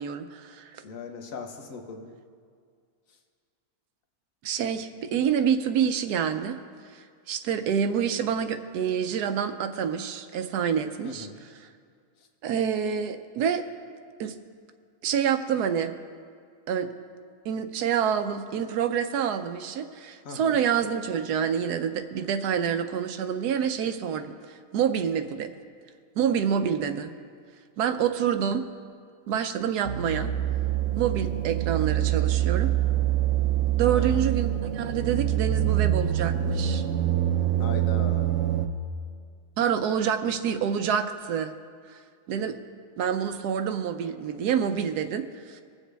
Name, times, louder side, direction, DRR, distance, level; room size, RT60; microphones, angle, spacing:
voice 1, 0.0-0.7 4.4-6.6 6.9-11.3 12.4-13.6 14.2-14.3 15.0-15.9 16.7-16.9 17.4-25.5 26.2-27.1 27.8-28.6 29.3-30.3 30.9-32.7 33.8-36.8 39.6-41.5 41.9-42.0 42.3-42.6 43.0-45.6, right 8 dB, 80° right, 9 dB, 1.2 m, -27 dB
voice 2, 0.8-2.1 3.1-3.2 11.0-11.4 12.2-12.3 20.2-20.6 33.9-34.3 37.6-38.3, left 4 dB, 60° left, 5 dB, 1.3 m, -39 dB
sound 1, 29.9-38.7, right 12 dB, 60° right, 0.9 m, -25 dB
21.5 x 7.3 x 3.4 m, 2.1 s
omnidirectional pair, 1.7 m